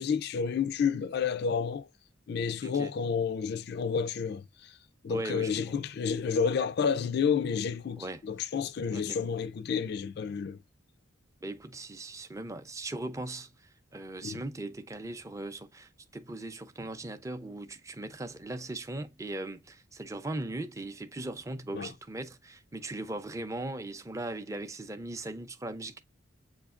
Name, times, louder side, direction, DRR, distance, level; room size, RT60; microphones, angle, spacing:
voice 1, 0.0-1.9 2.3-4.7 5.0-10.6 14.2-14.4 21.7-21.9, left 6 dB, 55° left, 0.4 m, -30 dB
voice 2, 2.6-2.9 5.1-5.7 8.0-8.2 8.9-9.2 11.4-13.5 13.9-26.0, right 2 dB, 15° right, 0.5 m, -39 dB
7.9 x 2.7 x 2.4 m
head